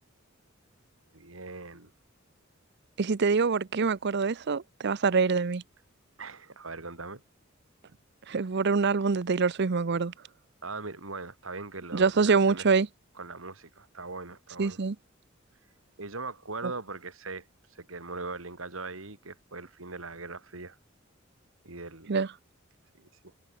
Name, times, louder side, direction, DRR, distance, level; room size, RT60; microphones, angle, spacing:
voice 1, 1.1-1.9 6.2-7.2 10.6-12.7 13.1-14.8 16.0-20.8 21.6-22.2 23.0-23.3, right 3 dB, 80° right, 3.2 m, -40 dB
voice 2, 3.0-5.6 8.3-10.1 11.9-12.9 14.6-15.0 22.1-22.3, right 4 dB, 55° right, 0.6 m, -25 dB
head